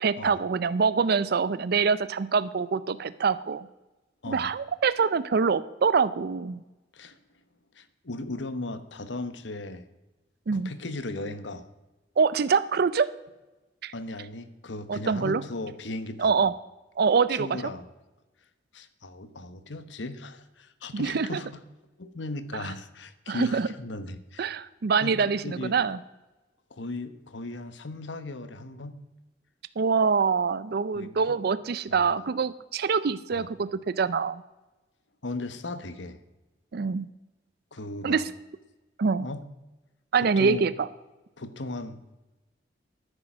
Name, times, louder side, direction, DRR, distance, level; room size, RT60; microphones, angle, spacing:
voice 1, 0.0-3.7 4.3-6.6 10.5-10.7 12.2-13.1 13.8-13.9 14.9-15.4 16.2-16.5 17.0-17.5 20.9-21.4 23.3-23.7 24.4-26.0 29.8-34.4 36.7-37.1 38.0-38.3 39.0-39.3 40.1-40.9, right 5 dB, 55° right, 15 dB, 0.4 m, -25 dB
voice 2, 7.7-9.9 10.5-11.7 13.9-16.5 17.3-17.9 18.7-21.5 22.0-24.6 25.0-25.8 26.7-29.0 30.9-31.4 31.9-32.1 33.3-33.5 35.2-36.2 37.7-38.3 39.2-39.4 40.4-40.7 41.4-42.0, left 2 dB, 75° left, 12 dB, 1.1 m, -37 dB
13.0 x 9.8 x 6.1 m, 1.1 s
head